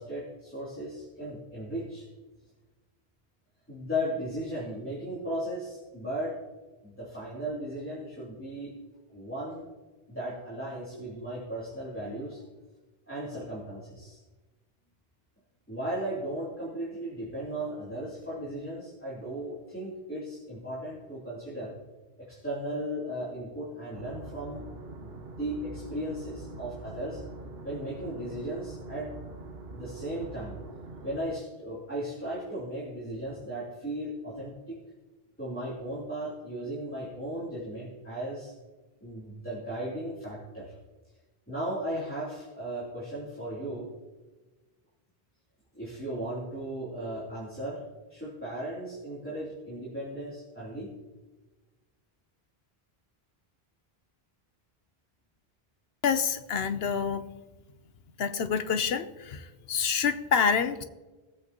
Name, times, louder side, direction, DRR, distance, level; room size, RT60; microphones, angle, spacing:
voice 1, 0.0-2.1 3.7-6.4 6.8-8.8 9.1-9.7 10.1-12.4 13.1-14.2 15.7-21.7 22.2-24.7 25.0-27.2 27.6-29.1 29.7-30.6 31.0-34.8 35.4-38.5 39.0-40.7 41.5-43.9 45.7-47.8 48.1-50.9, right 1 dB, 10° left, -9 dB, 3.3 m, -36 dB
sound 1, 23.9-31.2, right 2 dB, 70° right, 1.2 m, -44 dB
voice 2, 56.0-57.3 58.2-60.8, left 6 dB, 75° left, 11 dB, 1.0 m, -27 dB
19.5 x 8.3 x 3.0 m, 1.2 s
omnidirectional pair, 1.1 m